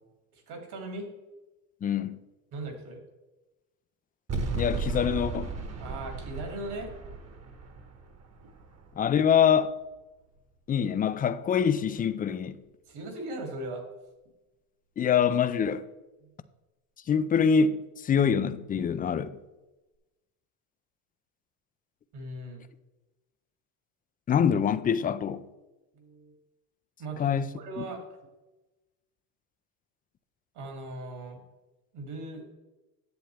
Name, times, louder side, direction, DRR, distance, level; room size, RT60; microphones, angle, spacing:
voice 1, 0.3-1.1 2.5-3.0 5.8-6.9 8.4-8.5 12.9-13.8 16.2-16.3 22.1-22.7 25.9-26.3 27.0-28.0 30.5-31.4 31.9-32.4, right 2 dB, 60° right, 2.9 m, -39 dB
voice 2, 1.8-2.2 4.5-5.5 9.0-9.7 10.7-12.6 15.0-15.8 17.1-19.3 24.3-25.4 27.2-27.5 27.8-27.9, left 7 dB, 20° left, 0.3 m, -25 dB
sound 1, 4.3-9.5, right 3 dB, 35° right, 1.3 m, -35 dB
10.5 x 7.7 x 3.4 m
supercardioid pair, 100°, 44 cm